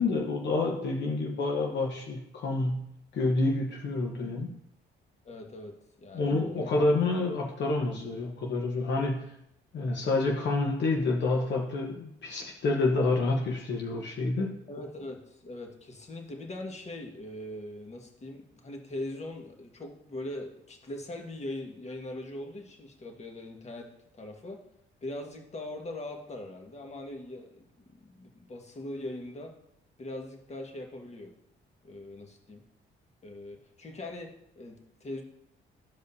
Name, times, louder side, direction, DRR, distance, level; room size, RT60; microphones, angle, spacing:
voice 1, 0.0-4.5 6.1-9.3 9.7-14.6, left 3 dB, 65° left, 0 dB, 1.2 m, -28 dB
voice 2, 5.3-6.7 14.7-24.6 25.0-27.7 27.9-29.5 30.0-31.3 31.8-32.6 33.2-35.2, left 1 dB, 35° left, 1 dB, 1.6 m, -41 dB
14.0 x 5.0 x 2.7 m, 0.75 s
cardioid pair, 90°, 20 cm